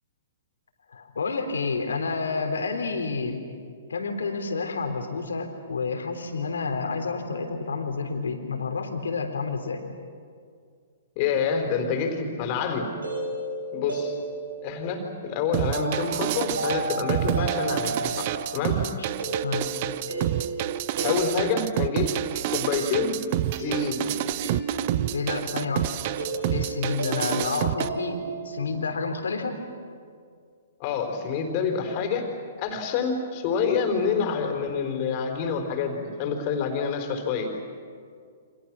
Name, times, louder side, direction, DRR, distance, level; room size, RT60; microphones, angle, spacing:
voice 1, 0.9-3.4 3.9-9.8 18.9-19.1 19.4-19.7 25.1-25.9 26.5-29.6, left 4 dB, 75° left, 5 dB, 3.4 m, -29 dB
voice 2, 11.2-12.9 13.7-14.2 14.6-18.8 21.0-22.2 22.5-23.2 23.5-24.1 30.8-32.3 32.6-37.5, left 6 dB, 40° left, 4 dB, 4.4 m, -27 dB
sound 1, 12.8-28.6, right 3 dB, 85° right, 7.0 m, -34 dB
sound 2, 15.5-27.9, right 14 dB, 45° right, 0.7 m, -29 dB
29.5 x 26.0 x 6.3 m, 2.2 s
figure-of-eight pair, 120°, 0 cm